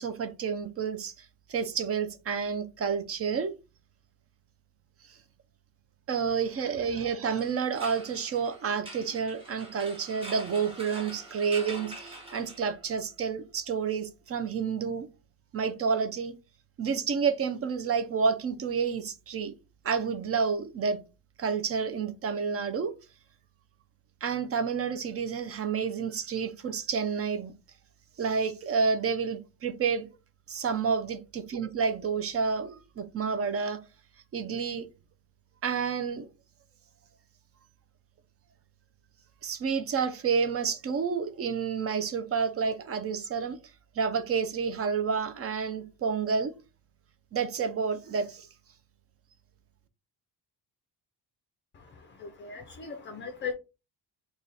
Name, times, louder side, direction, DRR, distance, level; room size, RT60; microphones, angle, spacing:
voice 1, 0.0-3.5 6.1-15.1 15.5-16.3 16.8-19.5 19.8-21.0 21.4-22.9 24.2-27.5 28.2-30.1 30.5-33.8 34.3-34.9 35.6-36.3 39.4-43.6 44.0-46.5 47.3-48.5, right 6 dB, 40° right, 0.4 m, -29 dB
sound 1, 7.3-13.0, right 1 dB, 15° right, 1.0 m, -45 dB
voice 2, 51.7-53.5, left 5 dB, 30° left, 0.4 m, -39 dB
4.0 x 2.3 x 3.2 m
cardioid pair, 175°, 40 cm